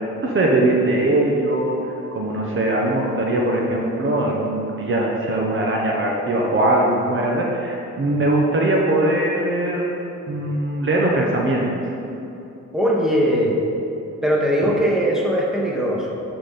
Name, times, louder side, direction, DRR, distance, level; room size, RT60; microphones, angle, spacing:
voice 1, 0.2-1.8 2.1-9.9 10.3-11.7 14.6-14.7, right 1 dB, 40° right, -2 dB, 1.0 m, -21 dB
voice 2, 12.7-13.6 14.2-16.2, equal, ahead, -4 dB, 1.3 m, -20 dB
9.5 x 4.1 x 4.1 m, 2.9 s
cardioid pair, 90°, 30 cm